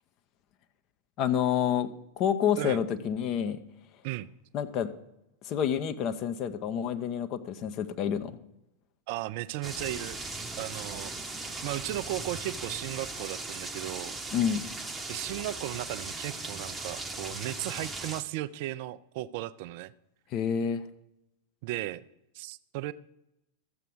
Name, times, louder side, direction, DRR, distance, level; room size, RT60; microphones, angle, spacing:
voice 1, 1.2-1.9 2.2-3.6 4.5-4.9 5.4-8.4 14.3-14.7 20.3-20.8, left 8 dB, 35° left, 9 dB, 0.8 m, -28 dB
voice 2, 9.1-10.2 10.6-14.2 15.1-19.9 21.6-22.1 22.3-22.9, right 15 dB, 50° right, 17 dB, 0.4 m, -36 dB
sound 1, 9.6-18.2, right 2 dB, 10° right, 0.9 m, -38 dB
13.5 x 7.7 x 4.8 m, 0.85 s
figure-of-eight pair, 90°, 0 cm